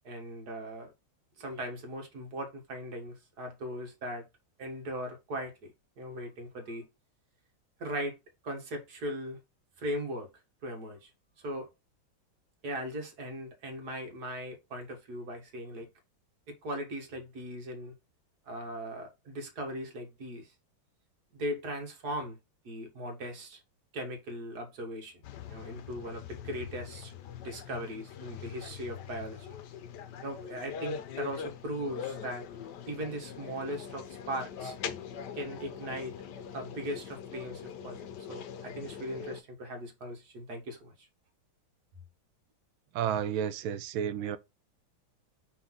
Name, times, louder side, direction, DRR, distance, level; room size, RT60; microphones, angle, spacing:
voice 1, 0.0-0.9 1.4-4.2 4.6-6.8 7.8-8.2 8.4-9.4 9.8-10.3 10.6-11.1 11.4-11.7 12.6-15.9 16.5-17.9 18.5-20.5 21.3-22.4 22.6-23.6 23.9-25.2 25.5-27.1 27.4-29.6 30.2-32.5 32.9-34.8 35.3-36.2 36.5-41.1, equal, 50° right, 2.2 m, -39 dB
sound 1, 25.2-39.4, left 8 dB, 65° left, 1.2 m, -42 dB
voice 2, 42.9-44.4, right 9 dB, 85° right, 1.5 m, -31 dB
5.7 x 4.2 x 3.9 m
omnidirectional pair, 2.2 m